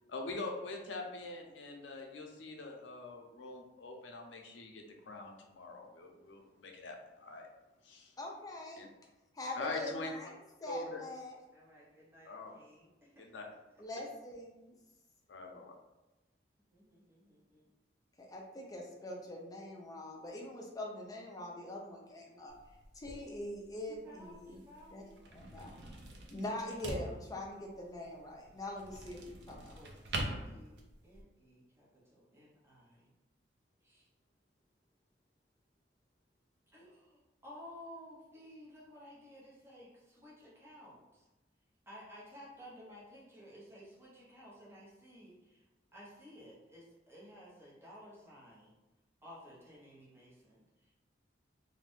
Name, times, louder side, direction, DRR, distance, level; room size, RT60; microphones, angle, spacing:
voice 1, 0.1-7.5 7.8-8.1 8.8-8.9 9.5-10.1 10.6-11.0 12.2-12.5 13.2-13.4 15.3-15.7, left 2 dB, 90° left, 2 dB, 0.6 m, -43 dB
voice 2, 8.2-8.8 9.3-10.3 10.6-11.4 13.8-14.8 18.2-22.5 22.9-24.6 24.9-25.0 25.3-25.7 26.3-29.7, left 1 dB, 20° left, -1 dB, 0.5 m, -43 dB
voice 3, 11.5-13.3 16.7-17.7 23.9-25.3 25.7-25.9 26.8-27.1 29.7-33.1 33.8-34.1 36.7-41.3 41.9-45.6 45.9-48.7 49.2-50.9, equal, 15° right, -7 dB, 0.8 m, -55 dB
sound 1, 22.5-31.2, right 1 dB, 65° right, 0.5 m, -45 dB
2.6 x 2.4 x 3.4 m, 1.1 s
head